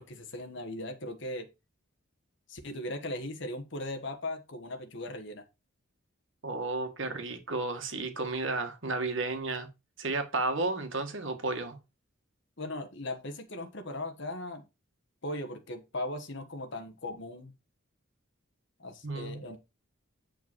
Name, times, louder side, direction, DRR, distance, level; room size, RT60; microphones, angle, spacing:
voice 1, 0.0-1.5 2.5-5.4 12.6-14.6 15.2-17.5 18.8-19.6, left 1 dB, 60° left, 1.4 m, -38 dB
voice 2, 6.4-9.7 10.0-11.8 19.0-19.4, right 3 dB, 60° right, 1.8 m, -32 dB
9.1 x 5.2 x 4.5 m
head